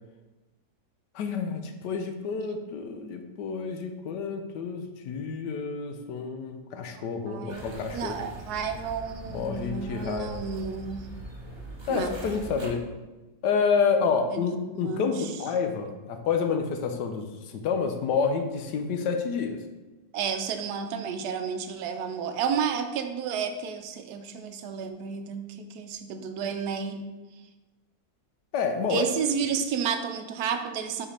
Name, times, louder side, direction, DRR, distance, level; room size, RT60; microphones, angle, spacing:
voice 1, 1.1-8.2 9.3-10.3 11.9-12.9 13.4-19.6 28.5-29.1, left 5 dB, 75° left, 6 dB, 1.2 m, -29 dB
voice 2, 7.2-7.7 7.9-11.1 11.9-12.4 14.3-14.5 14.7-15.3 20.1-27.0 28.9-31.1, right 7 dB, 70° right, 7 dB, 1.0 m, -31 dB
sound 1, 7.5-12.7, right 1 dB, 45° right, 0.3 m, -42 dB
5.1 x 5.0 x 4.1 m, 1.2 s
omnidirectional pair, 2.0 m